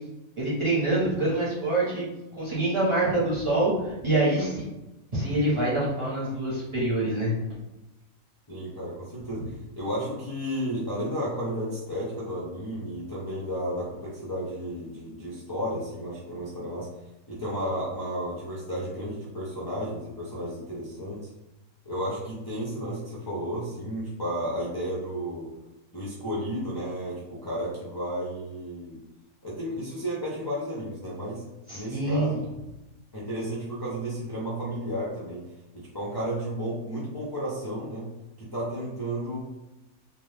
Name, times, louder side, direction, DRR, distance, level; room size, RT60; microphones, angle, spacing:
voice 1, 0.4-2.1 2.3-4.6 5.1-7.4 9.4-9.5 31.7-32.4, right 2 dB, 25° right, -8 dB, 0.7 m, -25 dB
voice 2, 8.5-16.9 17.3-21.3 21.8-25.5 25.9-29.0 29.4-31.4 31.7-32.4 33.1-35.4 35.7-38.1 38.4-39.4, equal, 40° left, -7 dB, 0.3 m, -33 dB
2.5 x 2.2 x 3.3 m, 0.99 s
omnidirectional pair, 1.5 m